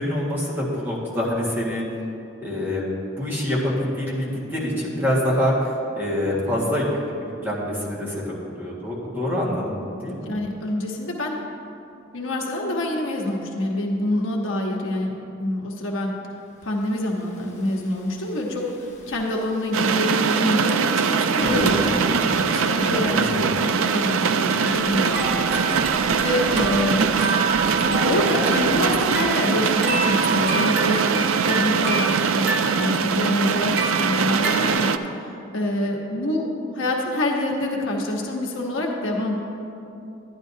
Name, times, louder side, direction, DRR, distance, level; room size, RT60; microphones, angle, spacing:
voice 1, 0.0-1.8 2.4-2.8 3.2-10.3 23.1-23.5, left 1 dB, 10° right, -6 dB, 1.7 m, -25 dB
voice 2, 10.2-11.4 12.1-16.1 16.6-22.0 22.3-27.0 28.0-34.9 35.5-39.3, left 1 dB, 75° left, -1 dB, 1.2 m, -26 dB
Thunder / Rain, 17.1-33.7, equal, 35° left, 1.3 m, -36 dB
sound 1, 19.7-35.0, right 6 dB, 85° right, 0.4 m, -22 dB
sound 2, 24.6-34.7, right 3 dB, 55° right, 1.1 m, -29 dB
11.5 x 10.5 x 2.8 m, 2.6 s
head